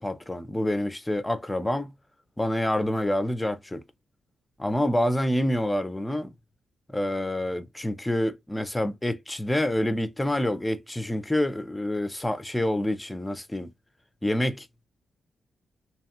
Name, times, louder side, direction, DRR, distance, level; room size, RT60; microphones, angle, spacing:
voice 1, 0.0-1.9 2.4-3.8 4.6-6.3 6.9-13.7 14.2-14.9, left 1 dB, 10° left, 0.5 m, -27 dB
2.9 x 2.3 x 2.8 m
cardioid pair, 70°, 0 cm